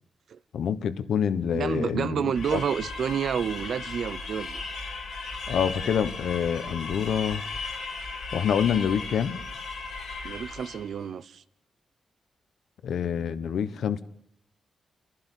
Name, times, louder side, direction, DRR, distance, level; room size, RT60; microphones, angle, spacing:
voice 1, 0.5-2.6 5.5-7.4 8.3-9.4 12.8-14.0, left 8 dB, 80° left, 1.2 m, -27 dB
voice 2, 1.5-4.6 10.2-11.4, right 7 dB, 60° right, 0.7 m, -29 dB
sound 1, 2.3-10.9, left 3 dB, 65° left, 3.7 m, -36 dB
30.0 x 11.5 x 8.3 m
wide cardioid pair, 175°, 0 cm